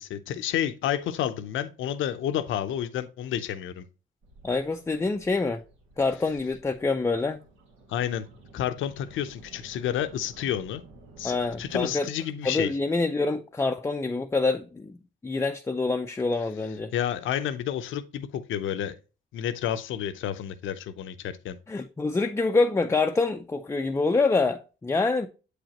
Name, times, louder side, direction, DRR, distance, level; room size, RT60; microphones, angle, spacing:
voice 1, 0.0-3.8 7.9-8.3 8.5-10.8 11.2-12.7 16.9-18.9 19.3-21.6, left 10 dB, 80° left, 0.7 m, -30 dB
sound 1, 4.2-11.9, right 2 dB, 85° right, 1.9 m, -52 dB
voice 2, 4.4-5.6 6.0-7.5 11.2-12.1 12.4-15.0 15.2-16.9 21.7-25.3, left 3 dB, 15° left, 0.4 m, -26 dB
8.1 x 5.0 x 2.9 m
cardioid pair, 90°, 20 cm